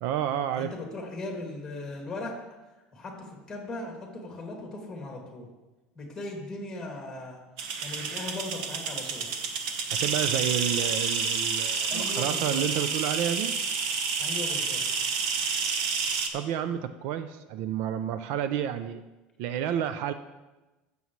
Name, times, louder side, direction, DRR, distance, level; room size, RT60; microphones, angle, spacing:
voice 1, 0.0-0.7 9.9-13.5 16.3-19.0 19.4-20.1, right 10 dB, 65° right, 11 dB, 0.5 m, -30 dB
voice 2, 0.5-2.3 2.9-5.5 6.0-7.4 7.8-9.3 11.9-12.7 14.2-14.8, left 2 dB, 15° left, 0 dB, 2.3 m, -38 dB
sound 1, 7.6-16.3, right 5 dB, 90° right, 1.0 m, -29 dB
15.0 x 7.0 x 3.1 m, 1.1 s
cardioid pair, 160°, 4 cm